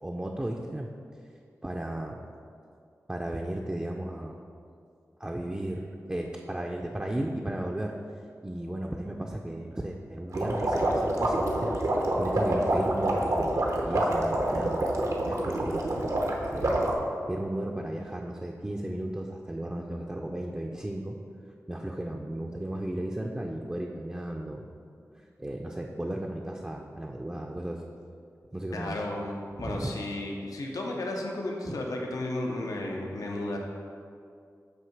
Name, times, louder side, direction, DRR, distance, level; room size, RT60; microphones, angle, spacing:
voice 1, 0.0-0.9 1.6-2.2 3.1-4.4 5.2-7.9 8.4-15.9 16.5-16.9 17.3-21.2 21.7-24.7 25.4-27.8 28.5-29.0 29.6-29.9 31.7-31.8, right 1 dB, 15° right, 0 dB, 0.5 m, -35 dB
sound 1, 10.3-16.9, right 1 dB, 70° right, 0.8 m, -27 dB
voice 2, 28.7-33.6, left 1 dB, 85° left, 0 dB, 0.7 m, -33 dB
7.9 x 2.8 x 5.8 m, 2.4 s
wide cardioid pair, 60°, 6 cm